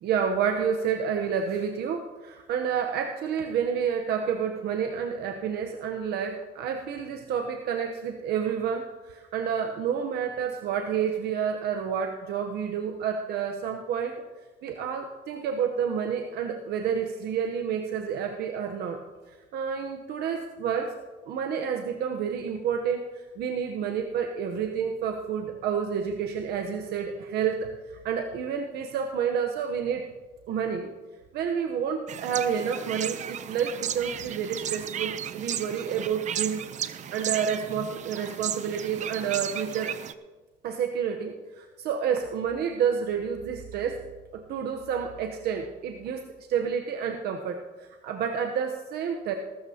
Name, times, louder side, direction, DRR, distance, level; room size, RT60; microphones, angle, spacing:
voice 1, 0.0-14.2 14.6-20.9 21.3-30.1 30.5-30.9 31.3-36.6 37.1-39.9 40.6-44.0 44.3-49.3, right 7 dB, 70° right, 4 dB, 0.9 m, -29 dB
sound 1, 32.1-40.1, right 9 dB, 45° right, 0.6 m, -34 dB
19.5 x 12.5 x 2.9 m, 1.3 s
cardioid pair, 110°, 17 cm